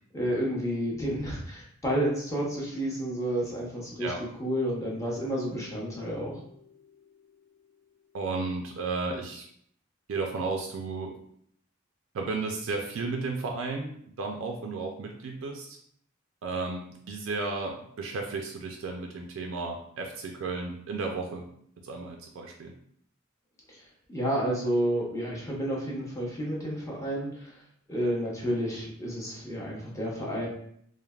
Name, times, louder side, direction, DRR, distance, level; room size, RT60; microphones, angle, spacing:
voice 1, 0.1-4.1 4.4-6.4 23.7-23.8 24.1-27.6 27.9-30.5, equal, 15° left, -3 dB, 0.6 m, -30 dB
sound 1, 5.2-8.9, left 6 dB, 75° left, 0.4 m, -53 dB
voice 2, 8.1-9.4 10.1-11.1 12.1-15.8 16.4-21.4 21.8-22.7, right 3 dB, 85° right, 2 dB, 0.4 m, -33 dB
3.2 x 2.0 x 2.3 m, 0.66 s
head